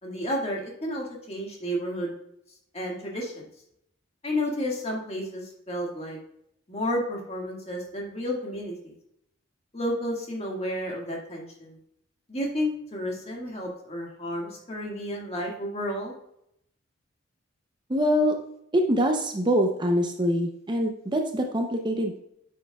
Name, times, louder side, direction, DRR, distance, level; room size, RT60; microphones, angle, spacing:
voice 1, 0.0-2.1 2.7-3.5 4.2-6.2 6.7-8.9 9.7-11.8 12.3-16.2, equal, 35° left, -1 dB, 1.8 m, -31 dB
voice 2, 17.9-18.4 18.7-22.2, equal, 25° right, 4 dB, 0.6 m, -24 dB
9.5 x 6.5 x 2.3 m, 0.75 s
head